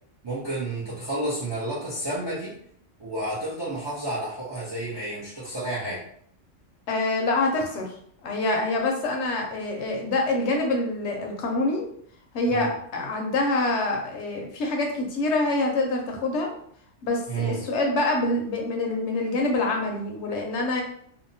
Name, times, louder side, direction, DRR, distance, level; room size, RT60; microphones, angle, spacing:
voice 1, 0.2-2.6 3.0-6.0 12.5-12.7 17.3-17.6, right 2 dB, 40° right, -6 dB, 0.4 m, -30 dB
voice 2, 6.9-7.9 8.2-11.8 12.3-16.5 17.0-20.8, left 2 dB, 70° left, 1 dB, 0.8 m, -26 dB
2.7 x 2.0 x 2.6 m, 0.64 s
omnidirectional pair, 1.3 m